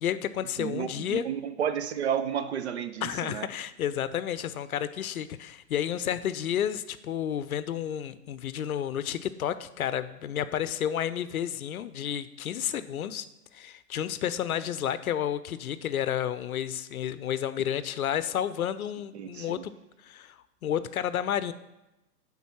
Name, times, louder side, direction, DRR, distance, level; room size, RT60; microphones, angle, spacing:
voice 1, 0.0-1.3 3.0-13.2 13.5-19.7 20.0-20.3 20.6-21.5, left 10 dB, 65° left, 14 dB, 0.6 m, -31 dB
voice 2, 0.6-3.5 19.1-19.7, right 8 dB, 45° right, 12 dB, 0.6 m, -32 dB
9.3 x 4.0 x 5.6 m, 0.95 s
figure-of-eight pair, 120°, 47 cm